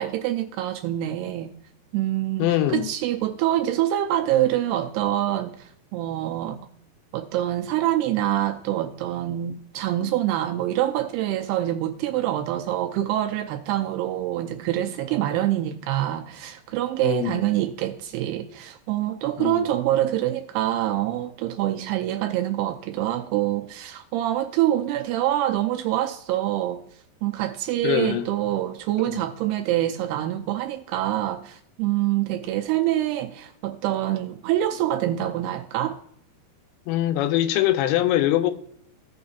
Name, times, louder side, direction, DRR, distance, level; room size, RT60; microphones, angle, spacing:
voice 1, 0.0-1.5 1.9-6.6 7.1-26.8 27.2-36.0, right 13 dB, 80° right, 2.4 m, -25 dB
voice 2, 2.4-2.9 17.0-17.4 19.4-19.7 27.8-28.3 29.1-29.3 36.9-38.5, left 13 dB, 85° left, 3.0 m, -23 dB
16.5 x 6.4 x 2.7 m
omnidirectional pair, 5.1 m